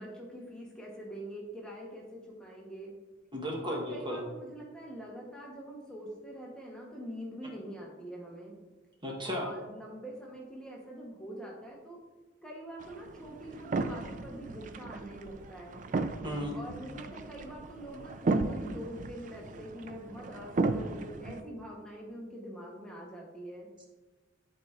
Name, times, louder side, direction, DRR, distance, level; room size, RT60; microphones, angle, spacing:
voice 1, 0.0-2.9 3.6-8.5 9.2-12.0 12.4-15.9 16.5-23.7, equal, 5° left, -3 dB, 0.8 m, -44 dB
voice 2, 3.3-4.2 9.0-9.5 16.2-16.6, equal, 25° right, -1 dB, 0.9 m, -34 dB
sound 1, 12.8-21.4, right 3 dB, 40° right, 0.3 m, -35 dB
11.0 x 4.2 x 2.4 m, 1.2 s
head